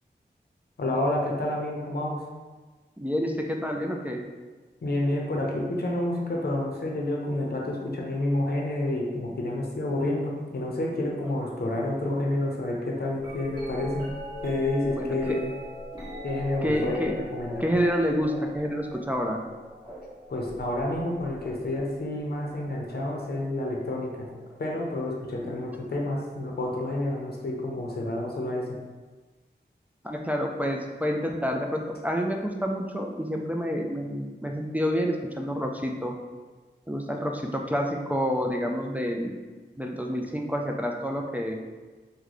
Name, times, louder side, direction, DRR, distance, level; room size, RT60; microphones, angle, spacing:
voice 1, 0.8-2.2 4.8-14.1 14.4-15.5 16.2-17.6 20.3-24.1 24.6-28.7, left 1 dB, 55° left, -2 dB, 0.6 m, -29 dB
voice 2, 3.0-4.2 14.9-15.4 16.6-17.1 17.6-19.4 30.0-36.1 36.9-39.3 39.8-41.6, equal, 10° right, 1 dB, 0.3 m, -28 dB
sound 1, 13.2-23.3 24.2-24.6 25.4-26.4 28.2-28.3, left 1 dB, 25° right, 1.3 m, -41 dB
3.0 x 2.2 x 3.8 m, 1.3 s
wide cardioid pair, 60°, 19 cm